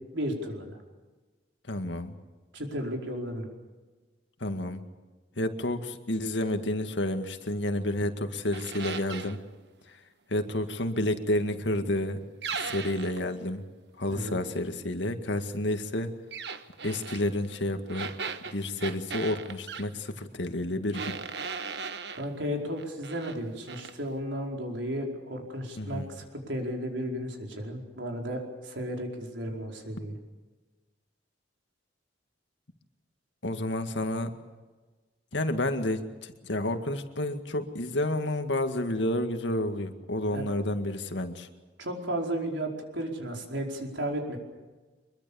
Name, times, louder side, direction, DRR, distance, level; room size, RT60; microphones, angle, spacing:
voice 1, 0.1-0.8 2.5-3.5 14.1-14.4 22.1-30.2 40.3-40.4 41.8-44.4, equal, 85° right, 1 dB, 4.8 m, -34 dB
voice 2, 1.7-2.2 4.4-4.8 5.4-9.4 9.9-10.0 10.3-12.2 12.5-13.6 14.0-16.1 16.8-18.1 18.5-21.2 25.8-26.1 33.4-34.3 35.3-41.5, left 1 dB, 80° left, 7 dB, 2.0 m, -30 dB
sound 1, 8.5-9.4 12.4-13.2 16.3-17.2 17.9-19.9 20.9-22.3 22.8-23.4 23.7-23.9, right 5 dB, 65° right, 1.3 m, -37 dB
24.5 x 22.0 x 7.1 m, 1.3 s
head